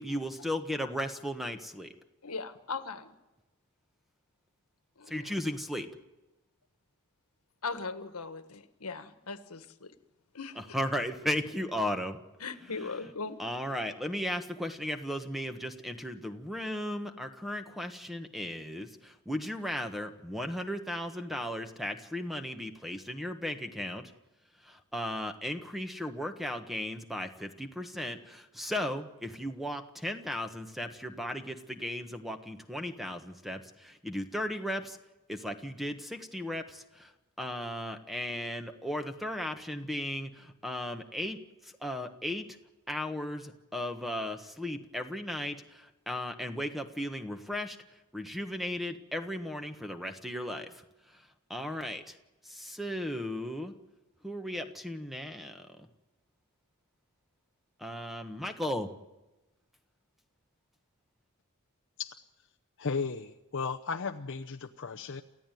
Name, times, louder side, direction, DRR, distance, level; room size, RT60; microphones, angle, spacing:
voice 1, 0.0-1.9 5.1-5.9 10.7-12.2 13.4-24.0 24.9-35.0 35.3-37.1 37.4-41.4 41.8-42.5 42.9-45.6 46.1-47.8 48.1-50.7 51.5-52.0 52.5-53.7 54.2-55.6 57.8-58.9, left 1 dB, ahead, 7 dB, 1.3 m, -36 dB
voice 2, 2.2-3.1 5.0-5.3 7.6-9.9 10.3-10.8 12.4-13.4, left 4 dB, 75° left, 10 dB, 1.6 m, -39 dB
voice 3, 62.8-65.2, left 5 dB, 60° left, 6 dB, 0.8 m, -35 dB
28.5 x 15.0 x 9.3 m, 1.0 s
head